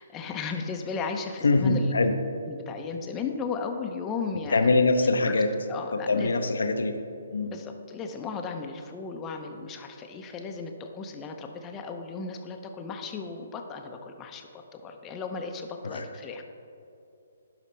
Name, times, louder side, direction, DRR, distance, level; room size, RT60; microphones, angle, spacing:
voice 1, 0.0-1.9 2.5-4.7 5.3-5.4 5.7-6.3 7.4-16.4, left 5 dB, 20° left, 4 dB, 0.6 m, -35 dB
voice 2, 1.4-2.1 4.5-5.5 5.9-6.9 7.3-7.5 15.8-16.0, left 3 dB, 70° left, 7 dB, 0.5 m, -23 dB
11.5 x 5.0 x 3.2 m, 2.6 s
figure-of-eight pair, 135°, 0 cm